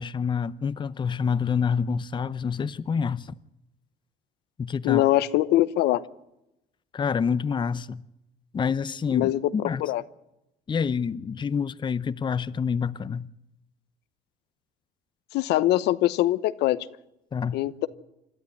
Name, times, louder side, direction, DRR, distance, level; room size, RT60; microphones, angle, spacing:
voice 1, 0.0-3.3 4.6-5.0 6.9-8.0 8.5-9.8 10.7-13.3 17.3-17.6, left 6 dB, 30° left, 0.7 m, -27 dB
voice 2, 4.8-6.0 9.1-9.5 9.8-10.0 15.3-16.9 17.5-17.9, left 15 dB, 80° left, 1.0 m, -22 dB
27.0 x 12.5 x 9.7 m
cardioid pair, 110°, 17 cm